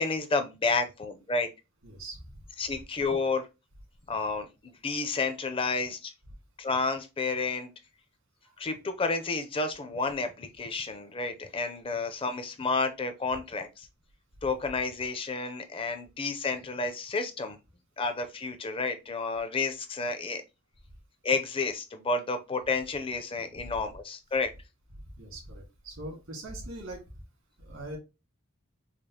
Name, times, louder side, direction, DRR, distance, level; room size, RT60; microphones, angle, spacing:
voice 1, 0.0-1.5 2.6-3.5 4.1-6.1 6.6-7.7 8.6-13.9 14.4-17.6 18.0-20.4 21.2-24.5, left 3 dB, 25° left, 0.5 m, -30 dB
voice 2, 1.8-2.2 8.4-8.6 25.2-27.0 27.6-28.0, right 1 dB, 80° right, 1.9 m, -41 dB
5.0 x 2.0 x 2.8 m
head